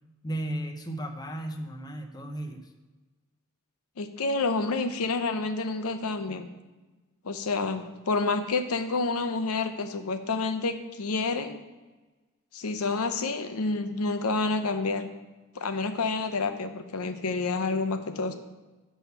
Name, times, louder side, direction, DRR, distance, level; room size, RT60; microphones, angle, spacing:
voice 1, 0.2-2.7, right 1 dB, 20° left, 5 dB, 0.6 m, -35 dB
voice 2, 4.0-6.5 7.2-11.6 12.5-15.1 15.5-18.3, left 3 dB, 80° left, 8 dB, 0.7 m, -29 dB
6.2 x 5.6 x 6.8 m, 1.2 s
head